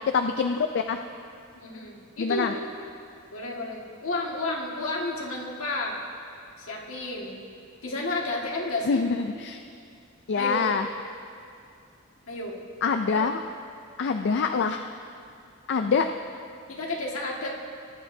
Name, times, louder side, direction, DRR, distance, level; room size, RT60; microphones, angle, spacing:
voice 1, 0.0-1.0 2.2-2.5 8.8-9.6 10.3-10.9 12.8-13.4 14.0-14.8 15.7-16.1, left 5 dB, 55° left, 6 dB, 0.4 m, -25 dB
voice 2, 1.5-2.6 3.3-6.0 6.6-7.4 7.8-9.0 10.4-10.7 12.3-12.6 13.1-13.4 16.7-17.5, left 2 dB, 70° left, -2 dB, 1.8 m, -31 dB
20.0 x 10.5 x 2.7 m, 2.4 s
head